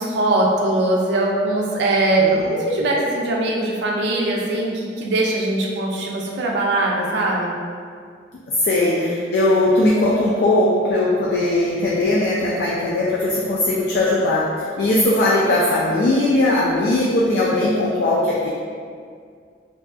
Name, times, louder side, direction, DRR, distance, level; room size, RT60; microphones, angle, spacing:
voice 1, 0.0-7.6 8.8-9.1, right 2 dB, 65° right, -2 dB, 0.4 m, -21 dB
voice 2, 2.1-2.5 8.6-14.5 14.8-18.5, left 1 dB, 60° left, -5 dB, 0.3 m, -19 dB
2.6 x 2.4 x 2.3 m, 2.1 s
head